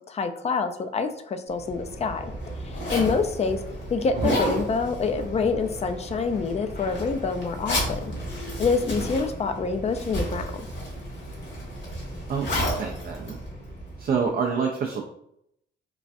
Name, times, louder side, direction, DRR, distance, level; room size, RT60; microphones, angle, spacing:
voice 1, 0.1-3.6 3.9-8.0 8.6-10.5, left 4 dB, 30° left, 7 dB, 0.4 m, -26 dB
Zipper (clothing), 1.5-14.2, equal, 60° left, 1.4 m, -32 dB
voice 2, 12.3-13.4 14.0-15.1, right 6 dB, 50° right, 1 dB, 0.4 m, -27 dB
3.2 x 2.4 x 2.5 m, 0.75 s
cardioid pair, 75°, 20 cm